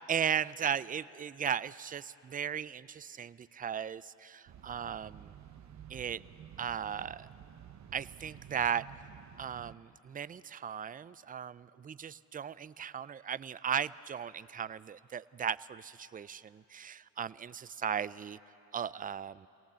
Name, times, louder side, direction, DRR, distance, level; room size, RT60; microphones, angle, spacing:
voice 1, 0.1-5.3 5.9-6.2 6.6-7.3 7.9-8.8 9.4-18.4 18.7-19.5, right 8 dB, 25° right, 17 dB, 0.4 m, -36 dB
sound 1, 4.5-9.8, right 9 dB, 45° right, 1.0 m, -52 dB
24.0 x 18.0 x 7.5 m, 2.9 s
supercardioid pair, 70°, 39 cm